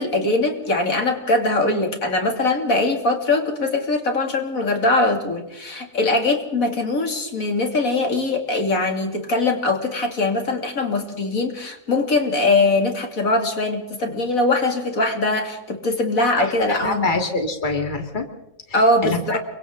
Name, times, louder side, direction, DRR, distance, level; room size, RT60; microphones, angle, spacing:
voice 1, 0.0-17.1 18.7-19.4, left 2 dB, 80° left, 3 dB, 3.3 m, -21 dB
voice 2, 16.8-18.2 18.7-19.4, left 3 dB, 35° left, 4 dB, 2.5 m, -25 dB
29.5 x 24.0 x 3.9 m, 0.88 s
omnidirectional pair, 1.4 m